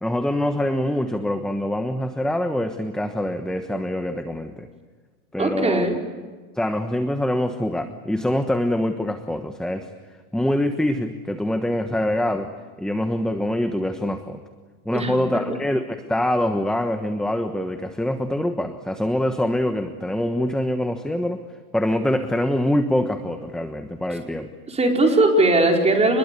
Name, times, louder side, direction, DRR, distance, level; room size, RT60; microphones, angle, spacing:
voice 1, 0.0-4.7 5.3-5.8 6.5-9.9 10.3-12.5 12.8-14.4 14.8-21.4 21.7-24.5, left 1 dB, ahead, 8 dB, 1.2 m, -24 dB
voice 2, 5.4-6.0 14.9-15.2 24.7-26.2, right 2 dB, 15° right, 2 dB, 4.7 m, -19 dB
27.5 x 21.5 x 8.4 m, 1.4 s
hypercardioid pair, 120°, 44 cm